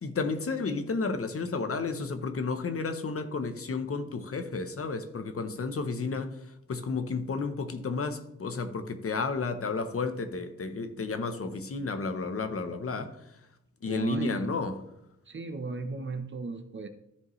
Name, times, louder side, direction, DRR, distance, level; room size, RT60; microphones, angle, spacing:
voice 1, 0.0-6.4 6.7-13.2 13.8-14.8, left 4 dB, 45° left, 0.8 m, -32 dB
voice 2, 13.8-14.5 15.3-16.9, right 4 dB, 35° right, 0.8 m, -35 dB
14.0 x 5.0 x 3.1 m
wide cardioid pair, 150°, 32 cm